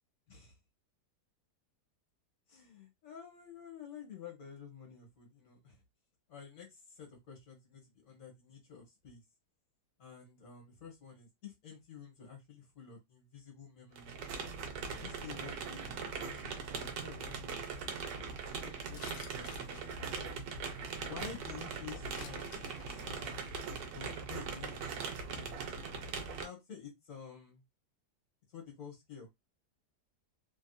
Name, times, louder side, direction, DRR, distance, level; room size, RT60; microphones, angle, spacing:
voice 1, 2.5-5.8 6.3-9.2 10.0-14.2 14.9-18.1 18.6-20.4 21.0-23.3 23.9-25.6 26.4-27.6 28.5-29.3, left 6 dB, 55° left, 0 dB, 1.5 m, -51 dB
sound 1, 14.0-26.5, right 5 dB, 75° right, 1.2 m, -41 dB
sound 2, 19.0-21.1 22.1-23.0 23.4-23.6 24.1-24.2 24.4-24.6 24.9-25.0, left 7 dB, 80° left, 1.1 m, -53 dB
3.3 x 2.6 x 2.2 m, 0.18 s
omnidirectional pair, 1.7 m